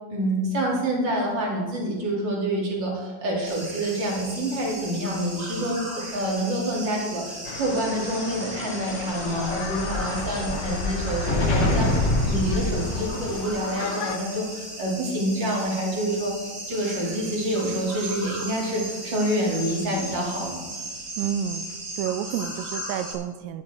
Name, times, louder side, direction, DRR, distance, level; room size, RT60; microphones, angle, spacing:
voice 1, 0.1-11.9 12.2-16.3 16.7-20.6, right 1 dB, 35° right, -3 dB, 3.1 m, -27 dB
sound 1, 3.4-23.1, right 1 dB, 55° right, 5.4 m, -37 dB
sound 2, 7.5-14.2, left 11 dB, 85° left, 1.7 m, -37 dB
Explosion, 8.9-13.5, left 1 dB, 35° left, 2.4 m, -26 dB
voice 2, 21.2-23.6, right 9 dB, 85° right, 10 dB, 2.3 m, -30 dB
13.0 x 10.5 x 4.4 m, 1.3 s
omnidirectional pair, 4.0 m